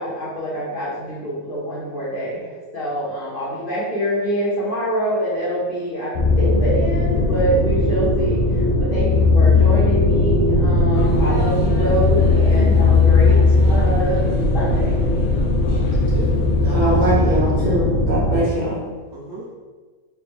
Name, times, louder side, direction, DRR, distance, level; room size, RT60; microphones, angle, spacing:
voice 1, 0.0-14.3 14.5-15.2, right 1 dB, 40° left, -9 dB, 1.1 m, -25 dB
sound 1, 6.1-18.4, left 3 dB, 65° left, 0.8 m, -17 dB
sound 2, 10.9-17.1, equal, 85° left, 1.2 m, -31 dB
voice 2, 15.7-17.6 19.1-19.5, right 1 dB, 20° right, -7 dB, 0.8 m, -35 dB
voice 3, 16.7-18.8, right 1 dB, 50° right, -6 dB, 0.5 m, -21 dB
3.1 x 2.4 x 3.5 m, 1.4 s
omnidirectional pair, 1.5 m